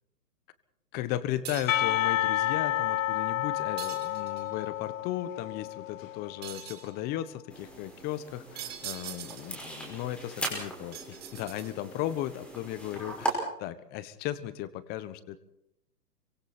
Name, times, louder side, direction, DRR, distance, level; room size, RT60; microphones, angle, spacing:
voice 1, 0.9-15.4, left 13 dB, 20° left, 15 dB, 1.2 m, -36 dB
sound 1, 1.4-1.9 3.8-4.5 6.4-6.9 8.5-9.6 10.9-12.0, right 11 dB, 20° right, 2.2 m, -42 dB
Percussion, 1.7-6.5, left 13 dB, 55° left, 0.7 m, -30 dB
sound 2, 7.5-13.3, right 2 dB, ahead, 5.3 m, -39 dB
26.5 x 24.5 x 4.4 m, 0.76 s
hypercardioid pair, 145°, 48 cm